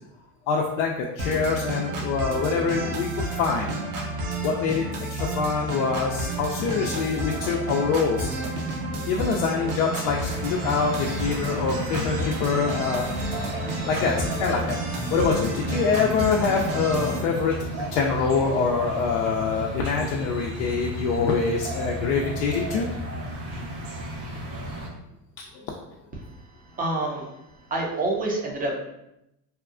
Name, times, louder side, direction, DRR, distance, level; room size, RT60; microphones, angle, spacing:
voice 1, 0.5-3.8 4.4-4.8 5.1-8.3 9.1-13.2 13.8-14.8 15.1-17.5 17.9-22.9 25.5-25.6, left 5 dB, 70° left, -1 dB, 0.5 m, -25 dB
sound 1, 1.2-17.2, right 1 dB, 65° right, 0.8 m, -31 dB
sound 2, 10.0-24.9, right 1 dB, 85° right, 1.0 m, -34 dB
voice 2, 26.7-27.3 27.7-28.7, right 2 dB, 20° right, -1 dB, 0.5 m, -27 dB
2.8 x 2.3 x 2.4 m, 0.87 s
supercardioid pair, 95°, 49 cm